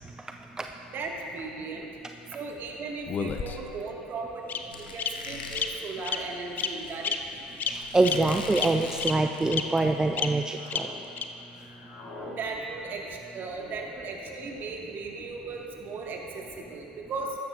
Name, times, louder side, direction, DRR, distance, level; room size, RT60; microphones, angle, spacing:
voice 1, 0.9-1.9 2.3-7.4 12.3-17.4, right 3 dB, 45° right, 0 dB, 1.8 m, -37 dB
Bird vocalization bird call bird song, 3.1-3.8 4.5-4.6 5.0-5.1 5.5-5.6 6.0-6.2 6.6-6.7 7.0-7.1 7.6-7.7 8.0-8.1 8.6-8.7 9.0-9.1 9.5-9.6 10.2-10.3 10.7-10.8 11.2-11.3, left 7 dB, 40° left, 0.7 m, -29 dB
Squeak, 4.7-9.8, left 3 dB, 85° left, 0.9 m, -42 dB
sound 1, 5.4-5.7 6.6-7.0 7.9-8.3 8.9-9.7 10.1-11.0 11.3-12.4, left 2 dB, 60° left, 2.8 m, -48 dB
voice 2, 7.7-10.9, right 2 dB, 15° right, 5 dB, 0.5 m, -25 dB
15.0 x 13.0 x 2.6 m, 2.8 s
hypercardioid pair, 70°, 5 cm